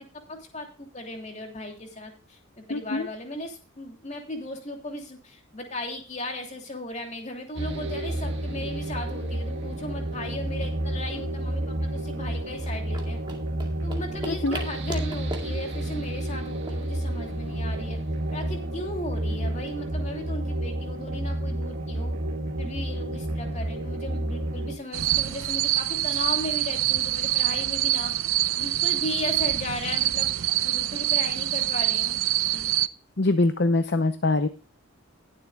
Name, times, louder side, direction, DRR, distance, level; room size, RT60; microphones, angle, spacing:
voice 1, 0.0-13.2 13.8-18.0 18.3-22.1 22.6-28.2 28.6-32.2 32.5-32.7, left 1 dB, 35° left, 3 dB, 2.8 m, -36 dB
voice 2, 2.7-3.1 14.3-14.6 33.2-34.5, left 2 dB, 50° left, 10 dB, 0.7 m, -23 dB
sound 1, 7.5-24.8, right 1 dB, 55° right, 1.8 m, -30 dB
sound 2, 12.6-17.7, right 1 dB, 20° right, 2.1 m, -41 dB
sound 3, 24.9-32.9, right 14 dB, 75° right, 0.6 m, -25 dB
20.0 x 7.7 x 2.3 m, 0.37 s
head